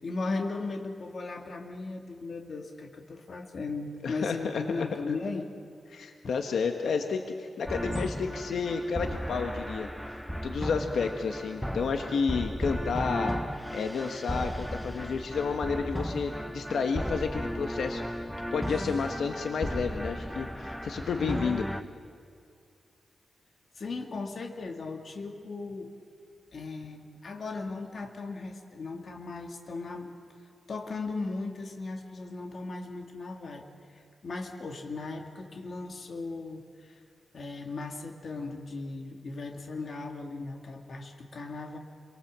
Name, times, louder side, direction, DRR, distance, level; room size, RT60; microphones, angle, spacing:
voice 1, 0.0-5.5 6.2-6.3 23.8-25.9 26.5-30.1 30.7-33.7 33.9-37.0 37.3-41.8, left 3 dB, 45° left, 3 dB, 2.1 m, -37 dB
voice 2, 4.0-5.2 5.9-13.4 13.7-18.2 18.5-21.7, left 5 dB, 70° left, 5 dB, 1.4 m, -31 dB
sound 1, 7.7-21.8, equal, ahead, 0.7 m, -35 dB
27.5 x 23.5 x 7.5 m, 2.3 s
wide cardioid pair, 170°, 0 cm